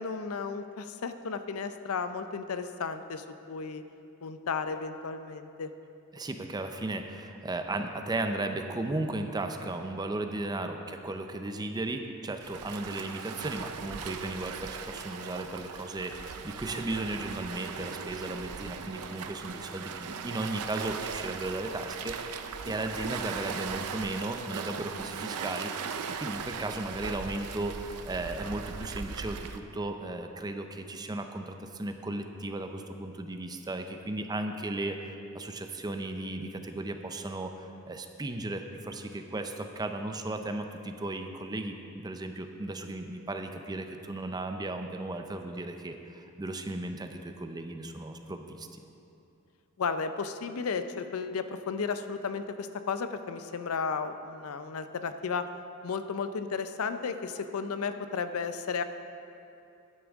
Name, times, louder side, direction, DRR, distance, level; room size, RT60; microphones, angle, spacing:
voice 1, 0.0-3.8 4.2-5.7 49.8-55.5 55.8-58.8, left 5 dB, 70° left, 10 dB, 0.5 m, -34 dB
voice 2, 6.1-22.4 22.7-48.8, right 2 dB, 20° right, 6 dB, 0.5 m, -35 dB
Waves surf, 12.4-29.6, right 6 dB, 85° right, 0.5 m, -39 dB
12.5 x 9.6 x 3.5 m, 2.7 s
head